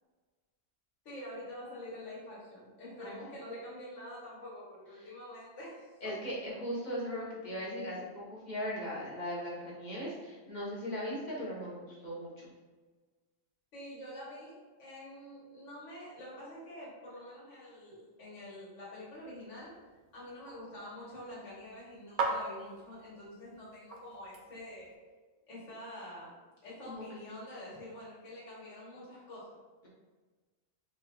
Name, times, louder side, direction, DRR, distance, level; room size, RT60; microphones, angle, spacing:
voice 1, 1.0-6.1 13.7-19.7 20.1-24.9 25.5-26.4 26.6-29.5, left 1 dB, 65° left, -7 dB, 1.7 m, -46 dB
voice 2, 6.0-12.5 23.4-23.7 26.8-27.0, equal, 35° left, -5 dB, 1.1 m, -39 dB
sound 1, 19.1-25.0, right 3 dB, 65° right, 0.5 m, -41 dB
4.5 x 3.1 x 2.3 m, 1.3 s
omnidirectional pair, 1.4 m